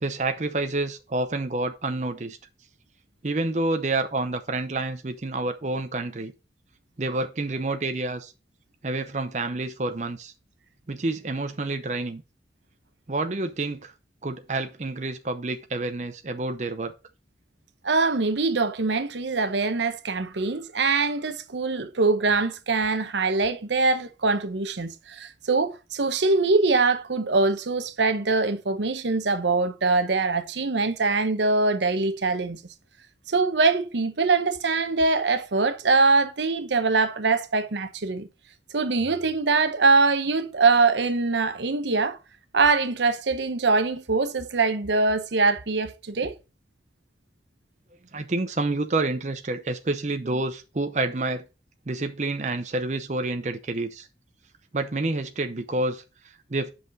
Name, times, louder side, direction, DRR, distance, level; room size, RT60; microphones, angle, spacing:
voice 1, 0.0-2.4 3.2-6.3 7.0-8.3 8.8-10.3 10.9-12.2 13.1-13.9 14.2-16.9 48.1-51.4 51.9-54.1 54.7-56.7, right 2 dB, 40° right, 0.7 m, -28 dB
voice 2, 17.8-32.6 33.3-38.3 38.7-42.2 42.5-46.4, right 3 dB, 80° right, 0.9 m, -23 dB
7.9 x 5.7 x 3.9 m
head